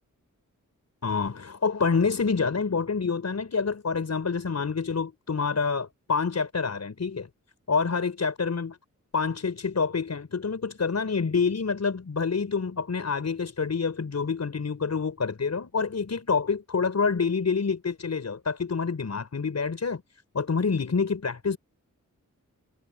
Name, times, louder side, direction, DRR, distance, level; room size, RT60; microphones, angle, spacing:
voice 1, 1.0-7.3 7.7-8.8 9.1-20.0 20.3-21.6, left 5 dB, 55° left, 6.7 m, -27 dB
wide cardioid pair, 125°, 32 cm